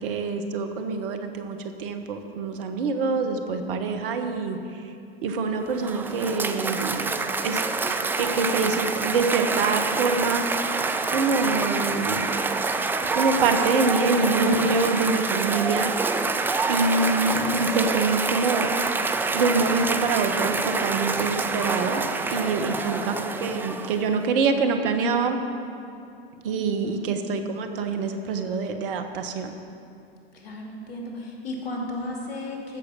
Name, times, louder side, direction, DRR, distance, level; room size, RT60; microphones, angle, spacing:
voice 1, 0.0-4.6 5.2-7.0 7.4-7.6 8.1-10.4 11.1-12.4 13.1-15.9 16.7-18.7 19.3-22.0 22.3-25.4 26.4-29.5, right 4 dB, 55° right, 6 dB, 1.3 m, -25 dB
Cheering / Applause, 5.6-24.2, right 3 dB, 5° right, 0.4 m, -27 dB
voice 2, 22.6-23.2 26.5-27.2 30.3-32.8, left 1 dB, 65° left, 0 dB, 2.6 m, -35 dB
14.5 x 6.7 x 6.1 m, 2.5 s
figure-of-eight pair, 95°, 32 cm